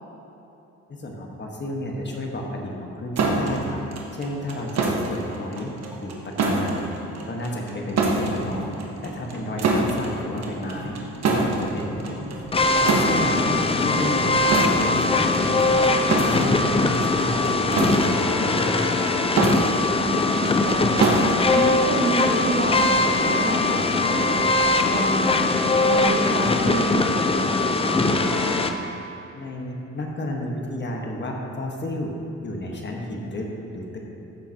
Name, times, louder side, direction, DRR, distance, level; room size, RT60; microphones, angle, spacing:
voice 1, 0.9-3.8 4.1-5.7 6.0-6.9 7.2-11.0 11.3-12.2 12.8-13.5 13.8-15.8 16.2-18.8 29.3-32.1 32.4-33.5 33.7-34.0, left 1 dB, 35° left, 0 dB, 1.4 m, -32 dB
sound 1, 3.2-22.5, right 3 dB, 60° right, 1.3 m, -27 dB
sound 2, 5.9-6.0 8.1-18.0 19.9-20.5 21.3-21.4 21.9-22.1, right 1 dB, 5° right, 2.2 m, -40 dB
sound 3, 12.5-28.7, left 3 dB, 20° left, 0.5 m, -21 dB
voice 2, 19.6-21.2 21.6-25.5 25.8-28.5, right 2 dB, 40° right, -2 dB, 1.8 m, -30 dB
15.0 x 7.1 x 2.9 m, 3.0 s
cardioid pair, 90°, 30 cm